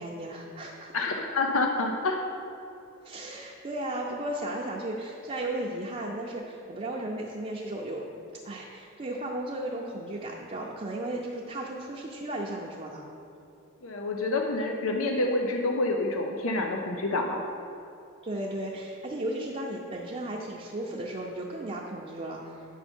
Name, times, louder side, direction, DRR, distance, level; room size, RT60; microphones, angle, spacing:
voice 1, 0.0-0.9 3.0-8.0 8.4-13.1 18.2-22.6, right 1 dB, 30° right, -3 dB, 0.6 m, -35 dB
voice 2, 0.9-2.2 13.8-17.4, left 2 dB, 80° left, 2 dB, 0.6 m, -28 dB
9.1 x 5.5 x 4.4 m, 2.6 s
head